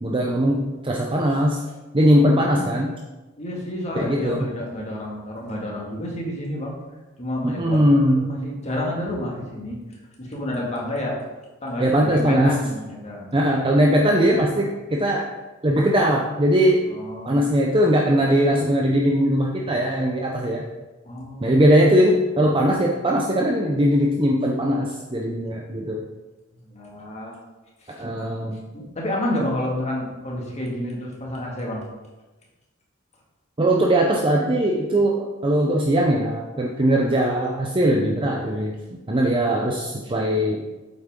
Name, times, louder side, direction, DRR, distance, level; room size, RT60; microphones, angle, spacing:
voice 1, 0.0-1.6 1.9-3.0 3.9-4.5 7.4-8.3 11.8-12.6 13.3-15.3 15.6-16.9 17.2-20.6 21.4-26.0 28.0-28.6 33.6-38.8 39.1-40.6, equal, 25° right, -1 dB, 0.7 m, -20 dB
voice 2, 2.0-2.5 3.4-6.7 7.2-9.8 10.2-11.2 11.6-13.3 16.9-17.4 21.0-21.6 26.5-27.4 27.8-27.9 28.7-31.9, left 1 dB, 35° left, -2 dB, 2.2 m, -30 dB
8.4 x 8.2 x 3.8 m, 1.2 s
head